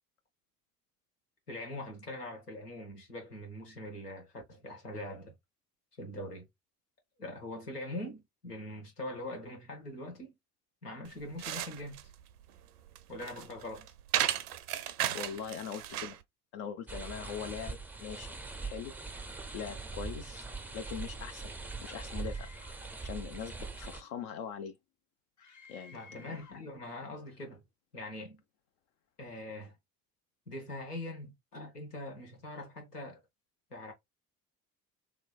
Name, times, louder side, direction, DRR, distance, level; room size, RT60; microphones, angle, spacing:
voice 1, 1.5-5.3 6.0-6.5 7.2-10.3 10.8-12.0 13.1-13.9 25.9-27.6 27.9-28.4 29.2-29.8 30.5-33.2 33.7-33.9, left 1 dB, 90° left, 1.0 m, -42 dB
sound 1, 11.0-16.2, right 12 dB, 80° right, 0.5 m, -35 dB
voice 2, 15.1-16.2 16.5-18.3 18.6-18.9 19.5-21.5 21.8-22.5 23.0-24.8 25.7-26.6, left 7 dB, 55° left, 0.5 m, -42 dB
Lancaster Gate - Small water fountain, 16.9-24.0, right 4 dB, 5° right, 0.4 m, -42 dB
Screaming, 22.1-23.0 25.4-26.7, left 3 dB, 40° left, 0.9 m, -55 dB
3.2 x 3.1 x 2.3 m
figure-of-eight pair, 55°, 45 cm